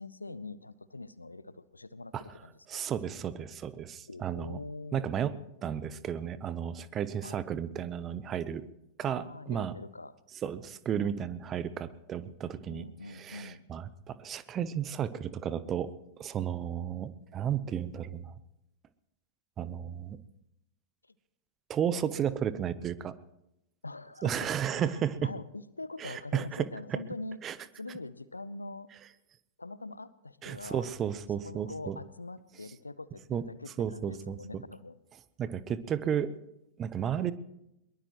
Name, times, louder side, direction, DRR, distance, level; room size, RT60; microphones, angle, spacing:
voice 1, 0.0-2.8 4.1-5.2 7.2-7.4 9.0-10.1 12.7-13.6 23.8-27.4 27.8-28.9 29.6-30.9 31.4-35.0, left 2 dB, 80° left, 17 dB, 0.7 m, -43 dB
voice 2, 2.7-4.6 4.9-5.3 5.6-8.7 9.0-9.7 10.4-15.9 16.2-18.3 19.6-20.2 21.7-23.1 24.2-25.3 26.0-27.0 27.4-27.6 30.4-32.0 33.3-33.4 33.8-34.6 35.4-36.3 36.8-37.3, right 9 dB, 30° right, 16 dB, 0.9 m, -33 dB
22.0 x 21.0 x 3.1 m, 0.85 s
figure-of-eight pair, 90°, 0 cm